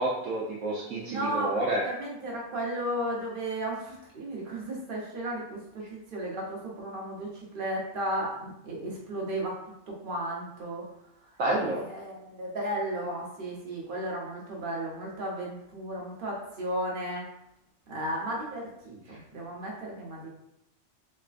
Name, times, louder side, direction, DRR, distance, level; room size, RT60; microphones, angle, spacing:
voice 1, 0.0-1.8 11.4-11.8, right 2 dB, 70° right, -5 dB, 1.0 m, -29 dB
voice 2, 1.1-9.5 9.9-10.8 11.5-17.2 17.9-20.3, right 1 dB, 45° right, -2 dB, 0.9 m, -34 dB
3.5 x 3.2 x 2.4 m, 0.83 s
omnidirectional pair, 1.5 m